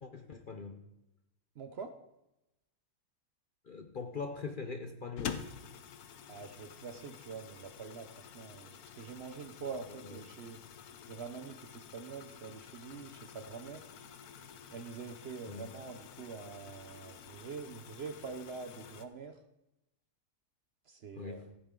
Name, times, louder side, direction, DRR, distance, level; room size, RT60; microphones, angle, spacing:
voice 1, 0.0-0.8 3.6-5.5 9.6-9.7 10.0-10.2 15.5-15.7 21.1-21.5, left 4 dB, 50° left, 6 dB, 0.7 m, -42 dB
voice 2, 1.6-1.9 6.3-10.6 11.1-13.9 14.7-19.4 20.9-21.5, right 5 dB, 55° right, 8 dB, 0.8 m, -45 dB
sound 1, 5.2-19.1, left 8 dB, 80° left, 1.2 m, -48 dB
14.5 x 8.7 x 3.7 m, 0.92 s
omnidirectional pair, 1.6 m